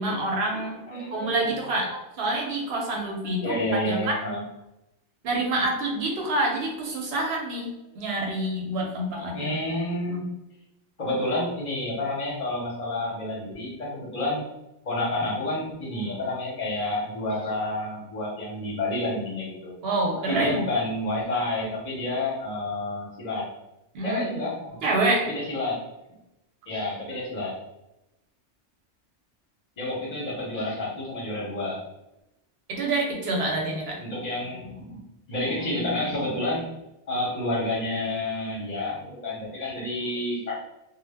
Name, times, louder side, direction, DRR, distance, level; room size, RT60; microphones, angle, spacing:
voice 1, 0.0-0.8 1.1-1.9 2.2-3.6 3.9-4.2 5.2-9.6 19.8-20.6 23.9-24.2 24.8-25.3 32.7-34.0, right 2 dB, 60° right, 0 dB, 0.8 m, -27 dB
voice 2, 0.9-1.5 1.8-2.0 2.9-3.0 3.2-4.4 7.2-7.3 9.1-10.3 11.0-14.4 14.8-19.7 20.3-23.5 24.0-24.8 25.2-25.8 26.7-27.5 29.8-31.8 34.0-35.0 35.3-36.7 37.1-40.6, left 1 dB, 45° left, -5 dB, 0.6 m, -29 dB
2.0 x 2.0 x 3.3 m, 0.92 s
omnidirectional pair, 1.2 m